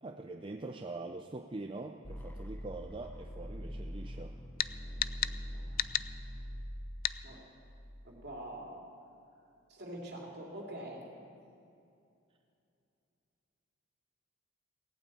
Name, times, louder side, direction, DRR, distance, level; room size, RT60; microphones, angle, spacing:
voice 1, 0.0-4.4, right 2 dB, 25° right, 5 dB, 0.5 m, -43 dB
sound 1, 2.0-8.0, equal, 10° left, 0.9 m, -43 dB
sound 2, 4.6-4.7 5.0-5.4 5.8-6.1 7.0-7.2, left 12 dB, 45° left, 0.3 m, -32 dB
voice 2, 8.0-8.8 9.7-11.0, right 1 dB, 50° right, -1 dB, 3.0 m, -44 dB
17.5 x 8.9 x 8.5 m, 2.6 s
head